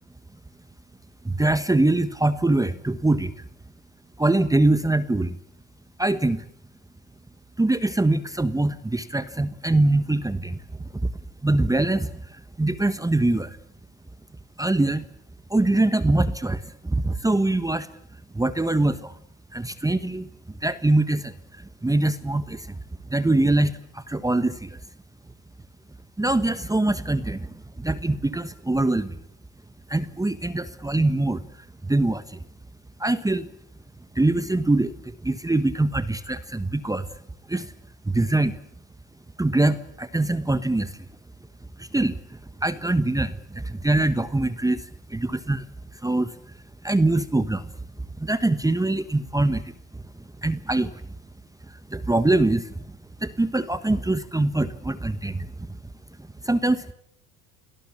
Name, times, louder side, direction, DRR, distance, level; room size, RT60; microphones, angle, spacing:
voice 1, 1.2-3.3 4.2-5.4 6.0-6.4 7.6-10.6 11.0-11.1 11.4-13.6 14.6-15.0 15.5-17.9 18.3-19.2 19.5-20.3 20.6-22.7 23.1-24.8 26.2-29.2 29.9-31.4 31.9-32.4 33.0-33.5 34.1-37.1 37.5-37.7 38.0-38.6 39.4-41.0 41.8-42.2 42.6-45.7 46.0-46.3 46.8-47.7 48.2-49.6 50.4-50.9 51.9-52.8 53.2-55.8 56.4-56.9, right 2 dB, 10° right, 13 dB, 1.2 m, -23 dB
29.5 x 18.5 x 8.6 m, 0.68 s
supercardioid pair, 85°, 38 cm